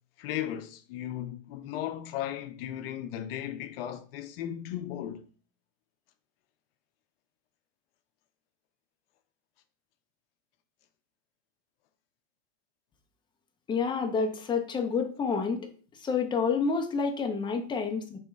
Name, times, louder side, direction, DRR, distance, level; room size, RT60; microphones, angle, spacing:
voice 1, 0.2-5.2, left 11 dB, 75° left, 0.5 m, -36 dB
voice 2, 13.7-15.6 16.0-18.2, left 5 dB, 15° left, 0.6 m, -28 dB
3.4 x 3.1 x 4.5 m
supercardioid pair, 135°, 30 cm